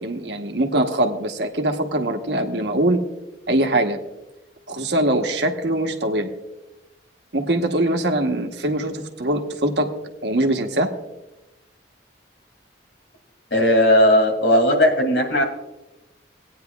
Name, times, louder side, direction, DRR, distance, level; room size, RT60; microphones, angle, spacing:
voice 1, 0.0-3.0 3.5-4.0 4.7-6.3 7.3-9.9 10.2-10.9, right 1 dB, 65° right, 4 dB, 1.1 m, -22 dB
voice 2, 13.5-15.4, left 1 dB, 85° left, 3 dB, 2.5 m, -16 dB
18.5 x 9.4 x 2.3 m, 1.0 s
head